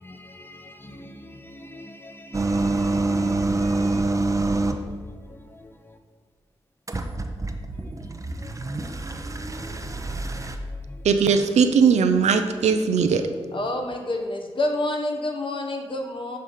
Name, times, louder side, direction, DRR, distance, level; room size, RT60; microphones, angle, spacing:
voice 1, 1.6-3.4 3.8-4.0 9.6-9.7, left 1 dB, 20° left, 0.8 m, -42 dB
sound 1, 2.3-4.9 6.9-10.6, right 2 dB, 30° right, 0.6 m, -26 dB
voice 2, 11.0-13.2, right 6 dB, 80° right, 0.5 m, -19 dB
voice 3, 13.5-16.4, left 1 dB, 50° left, 1.1 m, -28 dB
6.6 x 3.3 x 5.5 m
supercardioid pair, 40°, 11 cm